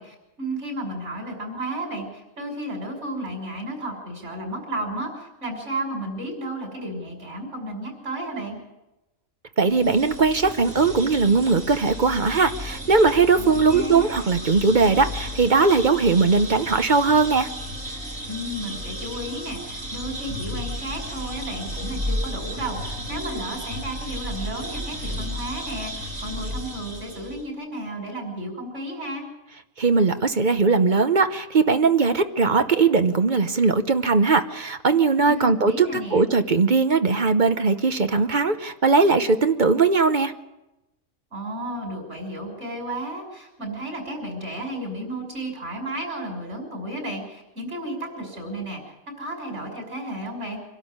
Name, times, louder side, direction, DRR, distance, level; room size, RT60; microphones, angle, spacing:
voice 1, 0.0-8.6 13.4-14.1 18.3-29.2 35.2-36.2 41.3-50.6, right 1 dB, 60° right, 2 dB, 6.5 m, -33 dB
voice 2, 9.6-17.5 29.8-35.9 36.1-40.3, right 4 dB, 40° right, 10 dB, 1.0 m, -19 dB
sound 1, 9.7-27.4, equal, 75° right, 4.1 m, -33 dB
25.5 x 12.5 x 9.7 m, 0.95 s
omnidirectional pair, 1.3 m